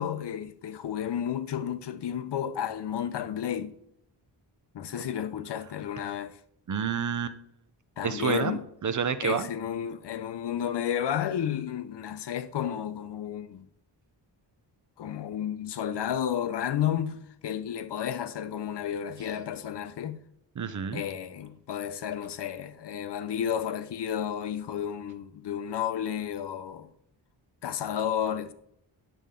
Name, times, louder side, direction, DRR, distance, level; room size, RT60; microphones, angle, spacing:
voice 1, 0.0-3.8 4.7-6.4 8.0-8.7 9.2-13.7 15.0-20.2 20.9-26.9 27.6-28.5, left 9 dB, 70° left, 0.7 m, -32 dB
voice 2, 6.7-7.4 8.0-9.5 20.6-21.0, right 7 dB, 45° right, 0.5 m, -29 dB
9.2 x 6.8 x 3.7 m
wide cardioid pair, 165°, 44 cm